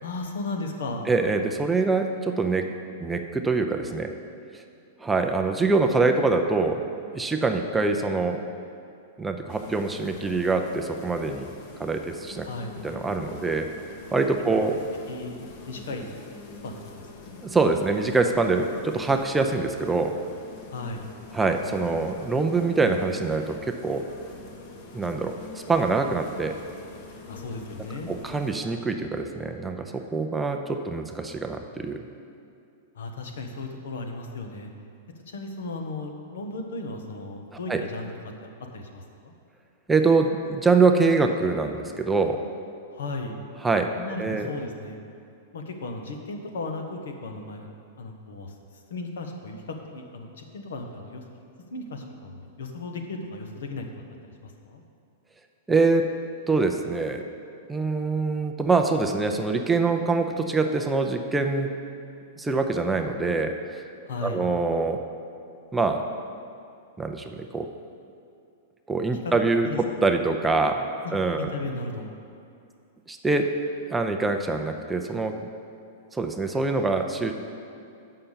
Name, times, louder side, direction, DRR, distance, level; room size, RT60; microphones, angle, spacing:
voice 1, 0.0-1.1 12.4-12.7 15.1-15.4 15.7-16.2 16.6-17.4 20.7-21.1 27.3-28.1 33.0-34.7 35.3-38.1 38.4-39.3 42.9-43.3 44.0-45.0 45.5-47.7 48.0-48.5 48.9-51.2 51.7-53.9 54.2-54.8 64.0-64.4 69.6-69.8 71.0-72.1, left 2 dB, 85° left, 3 dB, 1.1 m, -35 dB
voice 2, 1.1-2.7 3.0-4.1 5.0-6.8 7.1-8.5 9.2-11.5 11.8-12.5 12.8-13.7 14.1-14.8 17.4-20.1 21.3-24.1 24.9-25.4 25.7-26.6 28.1-32.0 37.7-37.8 39.9-42.4 43.6-43.9 44.2-44.5 55.7-56.1 56.5-57.2 57.7-61.8 62.4-63.8 64.2-65.0 65.7-66.0 67.0-67.7 68.9-71.5 73.1-73.5 73.8-75.5 76.1-77.3, right 3 dB, 10° right, 4 dB, 0.5 m, -24 dB
sound 1, 9.5-28.6, left 3 dB, 45° left, 1.0 m, -44 dB
6.6 x 5.7 x 7.3 m, 2.5 s
hypercardioid pair, 145°, 0 cm